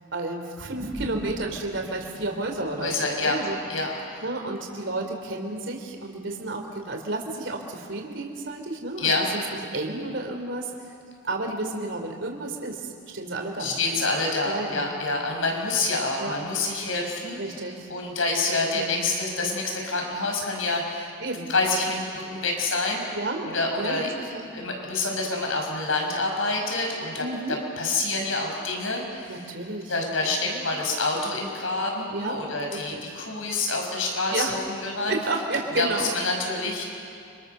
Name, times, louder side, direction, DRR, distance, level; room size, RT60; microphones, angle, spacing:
voice 1, 0.1-3.6 4.2-9.4 9.7-10.7 11.2-14.0 14.4-14.8 16.2-16.3 17.3-17.9 18.7-19.2 21.2-21.5 23.1-24.5 27.2-27.6 29.3-29.9 30.2-30.6 32.1-32.4 32.7-33.2 34.3-34.6 35.1-36.1, right 2 dB, 65° right, 2 dB, 3.3 m, -32 dB
sound 1, 0.6-5.3, equal, 85° right, 7.3 m, -41 dB
voice 2, 2.8-3.4 3.7-4.2 9.0-9.3 13.6-21.1 21.5-23.0 23.5-24.1 24.5-27.2 27.8-29.4 29.9-35.2 35.8-36.8, left 3 dB, 85° left, 1 dB, 6.0 m, -27 dB
29.5 x 26.5 x 6.8 m, 2.4 s
head